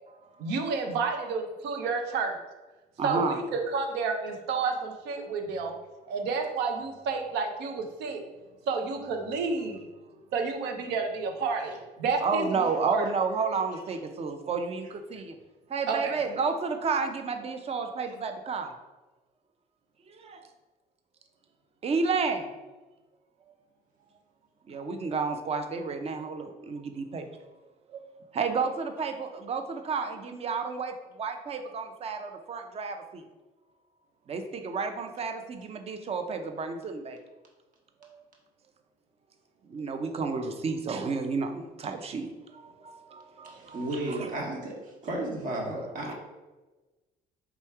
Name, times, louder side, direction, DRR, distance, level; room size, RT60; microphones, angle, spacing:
voice 1, 0.4-2.4 3.0-5.7 6.1-8.2 8.7-9.8 10.3-13.1 15.9-16.2, right 4 dB, 85° right, 4 dB, 0.7 m, -30 dB
voice 2, 3.0-3.4 12.2-15.4 15.7-18.7 20.2-20.4 21.8-22.5 24.7-27.3 27.9-28.0 28.3-33.2 34.3-37.2 38.1-38.2 39.7-44.2, right 4 dB, 35° right, 6 dB, 0.6 m, -31 dB
voice 3, 43.5-44.7 45.0-46.1, right 1 dB, 55° right, -1 dB, 1.3 m, -33 dB
3.5 x 3.1 x 4.6 m, 1.2 s
cardioid pair, 110°, 17 cm